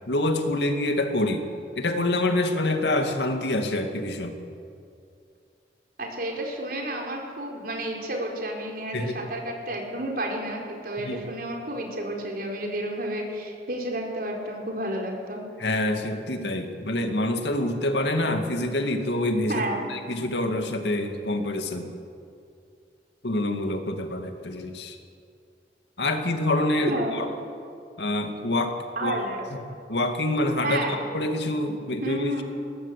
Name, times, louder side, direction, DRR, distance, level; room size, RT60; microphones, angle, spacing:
voice 1, 0.1-1.4 1.8-4.3 8.9-9.2 11.0-11.2 15.6-21.9 23.2-25.0 26.0-27.3 28.0-29.2 29.9-32.4, left 1 dB, 75° left, 6 dB, 2.2 m, -26 dB
voice 2, 6.0-15.4 19.5-19.9 26.9-27.1 29.0-29.5 30.6-31.0 32.0-32.4, right 1 dB, 55° right, 0 dB, 4.6 m, -31 dB
21.0 x 19.0 x 8.4 m, 2.4 s
head